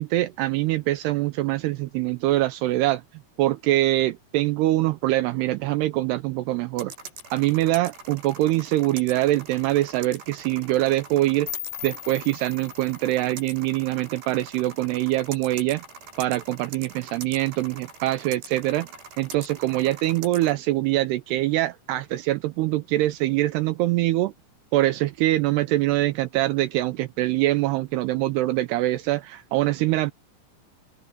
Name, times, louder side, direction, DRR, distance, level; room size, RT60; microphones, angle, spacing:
voice 1, 0.0-3.0 3.4-6.9 7.3-11.6 11.8-15.8 16.2-18.9 19.2-24.3 24.7-30.1, right 16 dB, 90° right, 2.4 m, -24 dB
sound 1, 6.8-20.5, right 4 dB, 65° right, 8.1 m, -43 dB
sound 2, 11.5-14.4, left 14 dB, 70° left, 2.8 m, -40 dB
open air
omnidirectional pair, 5.4 m